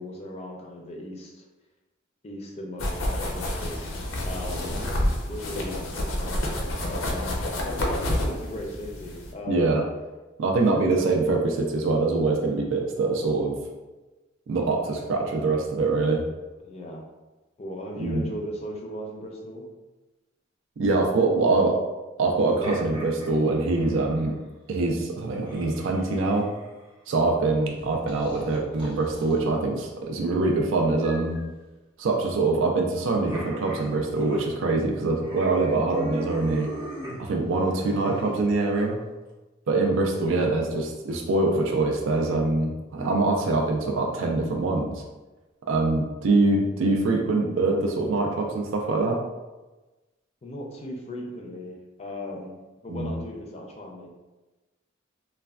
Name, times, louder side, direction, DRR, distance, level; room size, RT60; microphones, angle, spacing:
voice 1, 0.0-1.4 2.2-3.8 4.3-4.7 5.2-9.7 10.8-10.9 16.6-17.0 17.6-19.7 39.7-40.0 50.4-52.5 52.8-54.1, left 1 dB, 30° left, 0 dB, 0.4 m, -37 dB
sound 1, 2.8-9.3, left 1 dB, 85° left, 0.5 m, -29 dB
voice 2, 9.5-9.8 10.4-13.6 14.5-16.2 18.0-18.2 20.8-21.8 22.2-24.4 24.7-26.5 27.1-31.4 32.0-36.7 37.2-39.0 39.7-45.0 45.7-49.2 52.9-53.1, right 3 dB, 80° right, 1 dB, 0.4 m, -24 dB
sound 2, 22.4-24.4 25.4-26.8 27.8-29.4 31.0-31.4 33.3-34.5 34.8-34.9 35.2-38.8, equal, 25° right, 0.6 m, -39 dB
3.2 x 2.1 x 2.3 m, 1.1 s
head